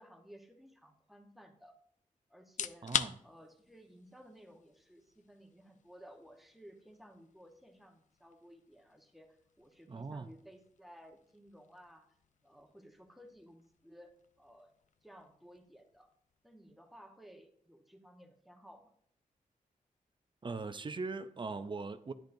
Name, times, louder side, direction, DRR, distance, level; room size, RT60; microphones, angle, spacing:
voice 1, 0.0-1.7 2.3-2.9 3.2-9.3 9.6-12.1 12.4-14.1 14.4-14.7 15.0-16.1 16.4-18.9, equal, ahead, 1.2 m, -57 dB
sound 1, 2.4-17.3, left 7 dB, 60° left, 0.4 m, -46 dB
voice 2, 2.8-3.1 9.9-10.3 20.4-22.1, right 4 dB, 35° right, 0.5 m, -40 dB
10.5 x 10.0 x 2.6 m
wide cardioid pair, 105°, 14 cm